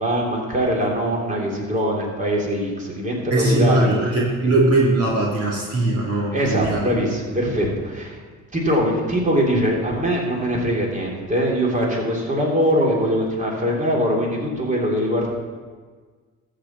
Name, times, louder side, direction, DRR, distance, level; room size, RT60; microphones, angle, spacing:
voice 1, 0.0-3.9 4.4-4.5 6.3-8.2 8.5-15.3, equal, 25° right, -2 dB, 3.1 m, -22 dB
voice 2, 3.3-6.8, right 2 dB, 50° right, -4 dB, 2.5 m, -20 dB
13.5 x 5.1 x 7.4 m, 1.5 s
cardioid pair, 90°, 30 cm